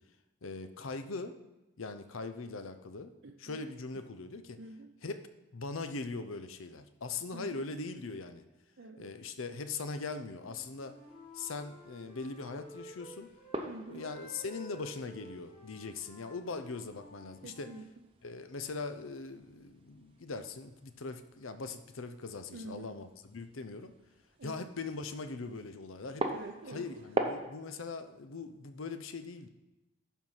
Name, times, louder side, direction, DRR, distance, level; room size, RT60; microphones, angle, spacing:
voice 1, 0.4-1.4 1.8-3.1 3.4-4.6 5.0-8.4 9.0-11.0 11.3-13.3 13.8-17.7 18.2-23.9 24.4-26.3 26.7-29.5, left 3 dB, 85° left, 10 dB, 0.7 m, -41 dB
voice 2, 3.2-3.6 4.6-4.9 7.3-7.7 8.8-9.0 13.6-14.0 17.4-18.0 22.5-23.0 24.4-24.7 26.2-26.8, right 2 dB, 65° right, 3 dB, 0.6 m, -47 dB
Wind instrument woodwind instrument, 10.3-13.6 14.0-17.8, equal, 30° left, 2.3 m, -52 dB
sound 1, 11.0-27.5, right 2 dB, 25° right, 0.7 m, -44 dB
11.5 x 4.6 x 5.6 m, 1.0 s
head